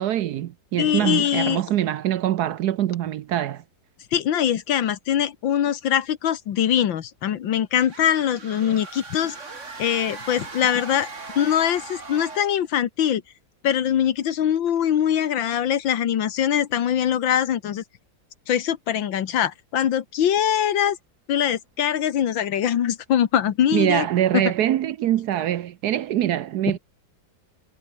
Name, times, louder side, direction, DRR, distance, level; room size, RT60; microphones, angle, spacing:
voice 1, 0.0-3.6 23.7-26.8, right 12 dB, 65° right, 1.1 m, -23 dB
voice 2, 0.8-1.6 4.1-9.4 9.8-11.1 11.4-13.2 13.6-17.8 18.5-21.0 21.3-24.1 24.3-24.4, left 10 dB, 80° left, 2.0 m, -22 dB
sound 1, 7.7-12.7, right 4 dB, 40° right, 2.9 m, -39 dB
omnidirectional pair, 2.0 m